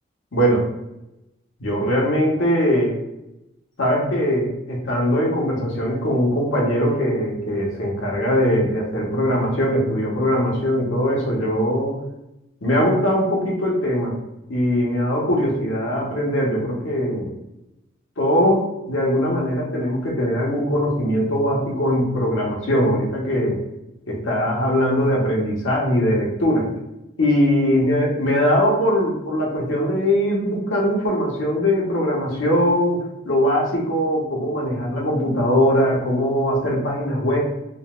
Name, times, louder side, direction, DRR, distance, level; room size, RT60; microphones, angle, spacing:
voice 1, 0.3-0.6 1.6-3.0 3.8-12.0 12.6-14.2 14.5-17.3 18.2-23.6 24.1-26.7 27.2-37.4, equal, 80° left, -3 dB, 0.9 m, -21 dB
3.8 x 2.1 x 2.4 m, 0.90 s
head